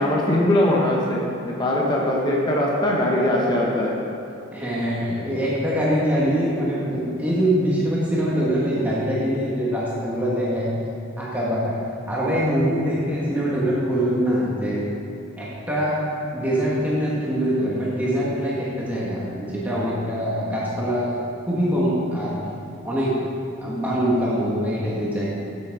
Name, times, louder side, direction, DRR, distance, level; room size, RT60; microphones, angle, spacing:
voice 1, 0.0-3.9, left 1 dB, 20° left, -3 dB, 1.0 m, -21 dB
voice 2, 4.5-10.8 11.2-11.8 12.1-14.8 15.4-16.0 16.3-21.2 21.5-22.4 22.8-23.2 23.6-25.3, equal, 10° right, -7 dB, 1.3 m, -23 dB
8.3 x 7.4 x 4.7 m, 2.7 s
head